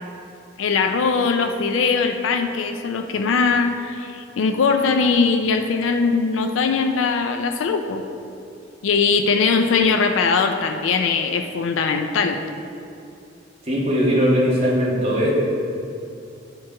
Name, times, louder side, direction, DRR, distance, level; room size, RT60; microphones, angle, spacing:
voice 1, 0.6-8.0 8.8-12.4, left 5 dB, 85° left, 6 dB, 0.4 m, -20 dB
voice 2, 13.6-15.3, equal, 30° right, -6 dB, 1.5 m, -19 dB
8.6 x 4.6 x 3.7 m, 2.6 s
head